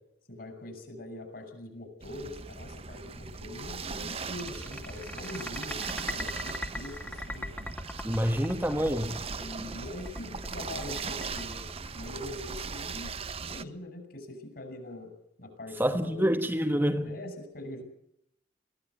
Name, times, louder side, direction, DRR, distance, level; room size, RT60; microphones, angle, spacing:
voice 1, 0.3-7.5 9.3-15.1 15.4-16.4 17.0-17.8, left 1 dB, 55° left, 6.5 m, -43 dB
sound 1, 2.0-13.6, right 5 dB, 35° right, 0.8 m, -39 dB
sound 2, 3.9-12.5, left 1 dB, 10° left, 2.2 m, -40 dB
voice 2, 8.0-9.1 15.8-17.1, equal, 10° right, 1.3 m, -27 dB
21.5 x 16.5 x 8.4 m
head